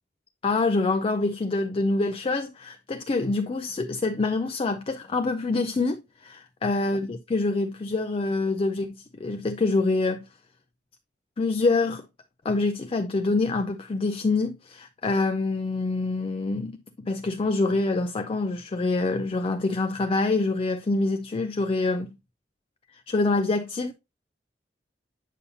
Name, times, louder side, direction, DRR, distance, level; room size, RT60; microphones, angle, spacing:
voice 1, 0.4-10.2 11.4-12.0 12.4-16.7 17.1-22.1 23.1-23.9, left 3 dB, 30° left, 0.4 m, -26 dB
8.3 x 5.5 x 2.7 m
head